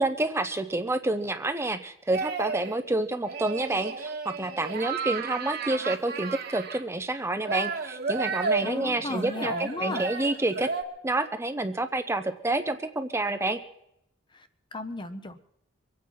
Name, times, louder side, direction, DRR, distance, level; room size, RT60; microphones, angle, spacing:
voice 1, 0.0-10.7 11.0-13.6, right 2 dB, 15° right, 8 dB, 0.7 m, -28 dB
sound 1, 2.1-2.8 3.2-6.8 7.4-10.8, right 4 dB, 50° right, 1.8 m, -32 dB
voice 2, 8.6-10.0 14.3-15.4, left 2 dB, 25° left, 10 dB, 0.8 m, -35 dB
23.5 x 8.6 x 5.8 m, 0.78 s
head